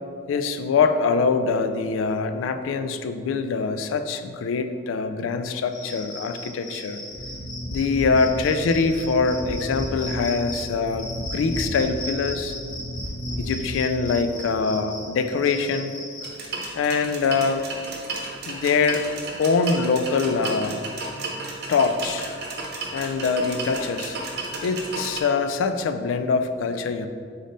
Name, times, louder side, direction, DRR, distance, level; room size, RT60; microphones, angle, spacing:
voice 1, 0.3-7.0 7.7-12.5 13.4-15.9 16.7-17.6 18.5-19.1 19.4-20.9 21.7-22.3 22.9-24.2 24.6-27.1, left 4 dB, 85° left, 9 dB, 0.3 m, -24 dB
Cricket, 5.7-16.3, left 1 dB, 45° left, 0.9 m, -38 dB
sound 1, 7.1-14.2, equal, 5° left, 1.0 m, -33 dB
sound 2, 16.2-25.2, right 3 dB, 60° right, 0.8 m, -33 dB
3.8 x 3.5 x 3.9 m, 2.2 s
head